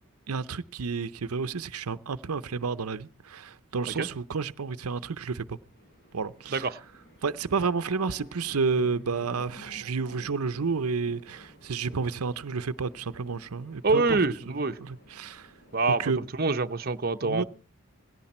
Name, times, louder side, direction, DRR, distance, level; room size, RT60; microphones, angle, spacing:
voice 1, 0.3-5.6 6.1-6.7 7.2-14.2 14.5-14.6 14.8-15.5 15.9-16.2 17.2-17.4, right 5 dB, 90° right, 0.7 m, -30 dB
sound 1, 5.5-16.3, left 1 dB, 45° left, 6.8 m, -54 dB
Guitar, 8.4-10.1, left 6 dB, 80° left, 6.6 m, -50 dB
voice 2, 13.8-14.8 15.7-17.4, right 3 dB, 45° right, 0.8 m, -26 dB
18.5 x 17.0 x 4.3 m
head